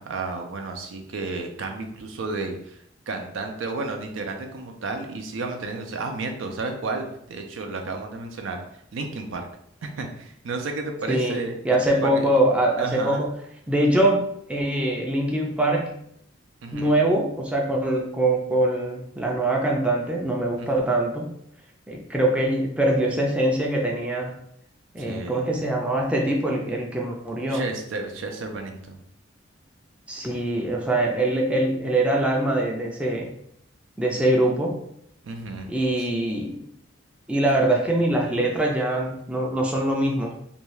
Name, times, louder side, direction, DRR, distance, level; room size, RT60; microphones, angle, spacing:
voice 1, 0.0-2.8 3.1-8.6 8.9-9.5 9.8-12.3 12.8-13.2 16.6-17.0 20.6-20.9 25.0-25.5 27.5-29.0 35.2-35.7 36.0-36.1, right 3 dB, 85° right, 4 dB, 0.5 m, -32 dB
voice 2, 11.1-11.4 11.6-13.3 13.7-15.9 16.7-21.3 21.9-24.4 24.9-27.6 30.1-33.3 34.0-34.8 35.7-36.7 37.3-40.4, right 1 dB, 5° right, -1 dB, 0.4 m, -23 dB
2.6 x 2.3 x 3.1 m, 0.72 s
head